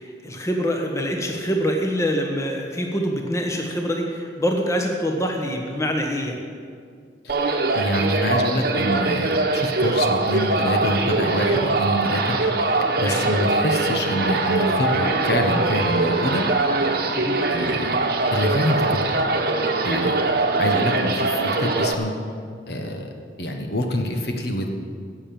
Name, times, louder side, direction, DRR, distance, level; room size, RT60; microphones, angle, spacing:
voice 1, 0.0-6.4 13.0-13.2 17.1-17.4 20.4-20.5, equal, 15° left, 2 dB, 1.2 m, -25 dB
sound 1, 7.3-21.9, right 3 dB, 55° right, 1.1 m, -22 dB
voice 2, 7.7-12.4 13.0-16.4 17.5-18.0 18.3-19.0 19.8-20.2 20.6-22.1 22.7-23.1 23.4-24.7, left 1 dB, 60° left, 3 dB, 1.4 m, -25 dB
15.0 x 7.3 x 8.7 m, 2.1 s
head